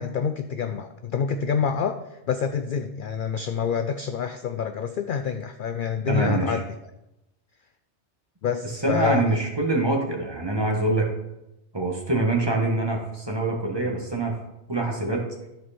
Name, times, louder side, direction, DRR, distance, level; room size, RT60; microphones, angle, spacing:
voice 1, 0.0-6.7 8.4-9.2, left 6 dB, 60° left, 8 dB, 0.6 m, -27 dB
voice 2, 6.1-6.6 8.6-11.1 11.7-14.3 14.7-15.3, right 2 dB, 20° right, 0 dB, 1.4 m, -25 dB
13.0 x 4.6 x 4.2 m, 0.92 s
omnidirectional pair, 1.2 m